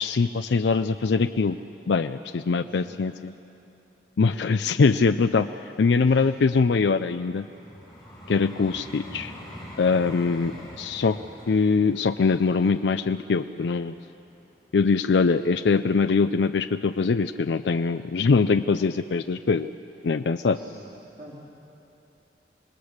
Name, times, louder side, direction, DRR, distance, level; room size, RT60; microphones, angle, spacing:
voice 1, 0.0-1.6 1.9-3.3 4.2-7.4 8.3-9.3 9.8-11.2 11.5-14.0 14.7-19.7 20.0-20.6, left 4 dB, 80° left, 9 dB, 0.5 m, -23 dB
voice 2, 2.6-3.0 6.0-6.3 20.5-21.4, right 1 dB, 45° right, -4 dB, 2.6 m, -48 dB
Vehicle, 6.9-15.0 15.6-15.8, equal, ahead, 6.0 m, -45 dB
27.5 x 20.0 x 6.5 m, 2.8 s
head